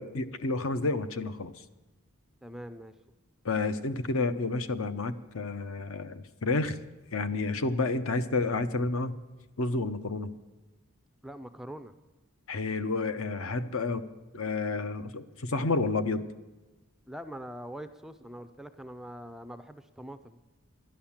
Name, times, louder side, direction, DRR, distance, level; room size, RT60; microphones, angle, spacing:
voice 1, 0.0-1.5 3.4-6.8 7.1-9.2 9.6-10.3 12.5-14.1 14.3-16.2, left 3 dB, 65° left, 11 dB, 0.7 m, -30 dB
voice 2, 2.4-2.9 11.2-11.9 17.1-20.4, equal, ahead, 11 dB, 0.3 m, -43 dB
11.5 x 10.5 x 7.2 m, 1.2 s
head